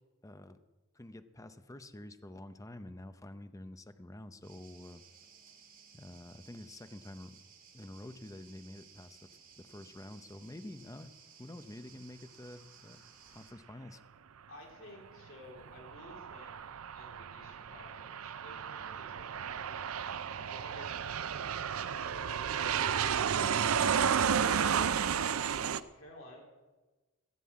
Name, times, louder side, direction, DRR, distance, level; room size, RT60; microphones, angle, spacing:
voice 1, 0.2-0.6 0.9-5.0 5.9-7.4 7.7-9.3 9.6-11.1 11.4-13.0 13.3-14.0, left 1 dB, 15° left, 10 dB, 0.7 m, -48 dB
sound 1, 4.4-13.5, right 6 dB, 40° right, 2.0 m, -58 dB
voice 2, 14.5-16.6 16.9-19.9 20.5-23.0 23.3-23.9 24.4-26.4, left 2 dB, 70° left, -1 dB, 3.9 m, -54 dB
Aircraft, 15.6-25.8, right 7 dB, 80° right, 0.5 m, -32 dB
15.0 x 7.6 x 8.5 m, 1.2 s
head